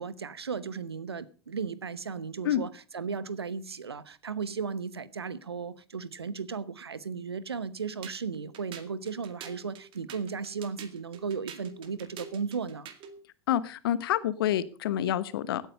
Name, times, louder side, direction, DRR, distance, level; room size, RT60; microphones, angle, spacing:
voice 1, 0.0-12.9, right 5 dB, 85° right, 0.9 m, -35 dB
sound 1, 8.0-13.2, right 7 dB, 40° right, 2.1 m, -47 dB
voice 2, 13.5-15.7, left 11 dB, 65° left, 1.2 m, -28 dB
16.5 x 9.2 x 5.3 m
figure-of-eight pair, 85°, 13 cm